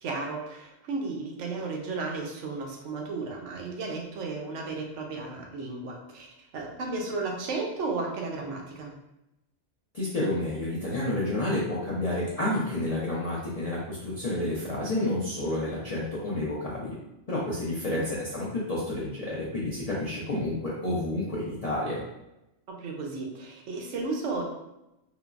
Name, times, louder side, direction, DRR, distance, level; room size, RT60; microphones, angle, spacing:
voice 1, 0.0-9.0 17.8-18.0 22.7-24.4, right 3 dB, 75° right, 1 dB, 0.9 m, -34 dB
voice 2, 9.9-17.0 17.3-22.0, left 1 dB, 45° left, -7 dB, 0.5 m, -30 dB
3.7 x 2.0 x 2.3 m, 0.89 s
omnidirectional pair, 1.2 m